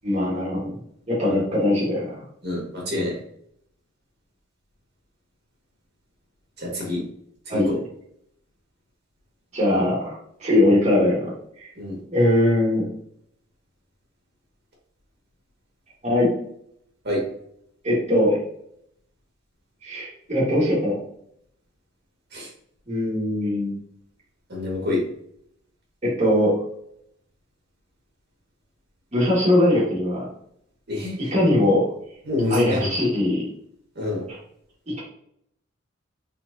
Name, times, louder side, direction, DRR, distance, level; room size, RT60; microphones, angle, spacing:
voice 1, 0.0-0.7 1.1-2.2 7.5-7.7 9.5-11.3 12.1-12.9 16.0-16.3 17.8-18.4 19.8-21.0 22.9-23.8 26.0-26.6 29.1-30.3 31.2-31.9 32.5-33.4 34.3-34.4 34.9-35.0, left 1 dB, 35° right, -7 dB, 1.6 m, -21 dB
voice 2, 2.4-3.1 6.6-7.0 7.5-7.8 11.8-11.9 17.0-17.2 22.3-22.5 24.5-25.0 30.9-31.1 32.2-32.9 33.9-34.2, left 2 dB, 55° right, -3 dB, 1.7 m, -26 dB
4.2 x 3.9 x 2.7 m, 0.70 s
head